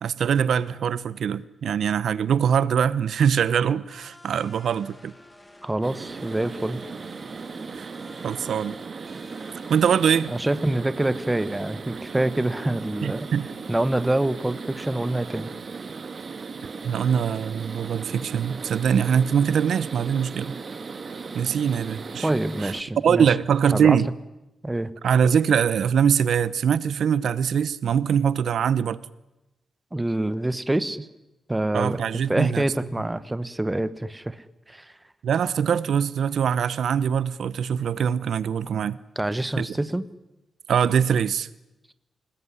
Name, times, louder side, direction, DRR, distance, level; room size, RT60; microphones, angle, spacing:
voice 1, 0.0-5.1 7.7-7.9 8.2-8.8 9.7-10.3 13.0-13.5 16.8-20.5 21.3-22.3 22.6-22.7 23.0-24.1 25.0-29.0 31.7-32.6 35.2-39.0 39.6-39.7 40.7-41.5, right 7 dB, 80° right, 0.8 m, -23 dB
sound 1, 3.9-9.8, left 1 dB, 10° left, 2.2 m, -51 dB
voice 2, 5.6-6.8 10.3-13.3 13.7-15.5 22.2-23.3 23.7-24.0 24.6-24.9 29.9-31.1 31.5-32.0 32.3-34.9 39.2-40.0, right 1 dB, 10° right, 1.1 m, -26 dB
sound 2, 5.8-22.8, right 4 dB, 40° right, 1.5 m, -37 dB
26.5 x 19.5 x 9.8 m
wide cardioid pair, 140°, 0 cm